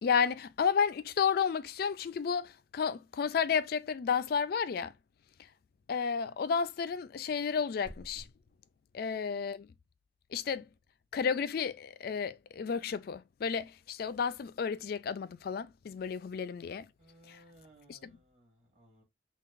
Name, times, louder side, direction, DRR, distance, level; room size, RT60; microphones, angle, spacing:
voice 1, 0.0-4.9 5.9-8.2 8.9-9.7 10.3-10.7 11.1-16.9 17.3-17.4 17.9-18.2, left 6 dB, 50° left, 0.3 m, -32 dB
voice 2, 17.0-19.0, right 1 dB, 35° right, 2.5 m, -61 dB
5.7 x 2.3 x 2.5 m
head